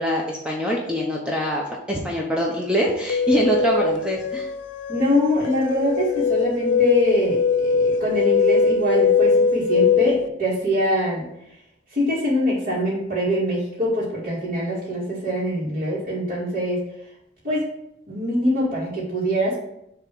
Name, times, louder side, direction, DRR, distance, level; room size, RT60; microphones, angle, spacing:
voice 1, 0.0-4.5, equal, 5° right, -2 dB, 0.8 m, -24 dB
sound 1, 3.1-10.3, left 5 dB, 85° left, 0.4 m, -21 dB
voice 2, 4.9-11.3 11.9-16.8 17.4-17.6 18.1-19.6, equal, 50° right, -9 dB, 2.4 m, -23 dB
6.8 x 3.6 x 6.0 m, 0.80 s
head